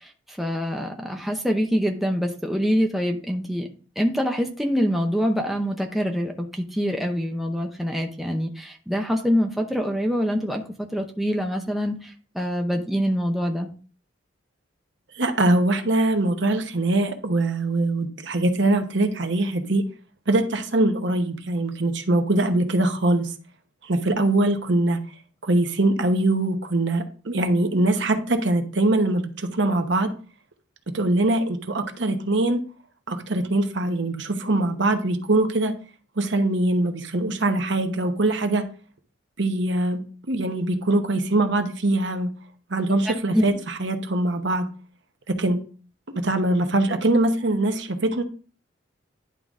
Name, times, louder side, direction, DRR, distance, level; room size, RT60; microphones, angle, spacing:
voice 1, 0.0-3.7 4.0-13.7 43.3-43.4, equal, ahead, 2 dB, 0.7 m, -25 dB
voice 2, 15.1-19.8 20.3-23.3 23.8-25.0 25.4-30.1 30.9-32.6 33.1-35.7 36.2-38.7 39.4-40.0 40.3-42.3 42.7-44.7 45.3-45.6 46.1-48.2, right 2 dB, 70° right, 6 dB, 1.0 m, -22 dB
10.5 x 3.8 x 3.6 m, 0.39 s
head